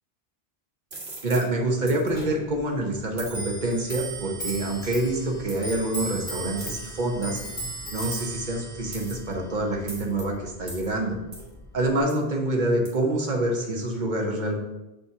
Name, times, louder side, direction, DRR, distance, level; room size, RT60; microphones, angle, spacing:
sound 1, 0.9-1.5 1.9-2.1 3.2-3.4 4.5-4.7 5.5-5.6 6.6-6.9 8.0-8.4 8.9-9.3 9.9-10.2 10.7-10.9 11.3-11.5 12.1-12.2 12.9-13.0, right 2 dB, 75° right, 1.8 m, -40 dB
voice 1, 1.2-7.4 7.9-11.1 11.7-14.6, right 1 dB, 45° right, 1 dB, 1.2 m, -26 dB
Clock, 2.1-12.0, right 2 dB, 15° left, 1.7 m, -37 dB
6.9 x 3.4 x 5.7 m, 0.97 s
omnidirectional pair, 1.1 m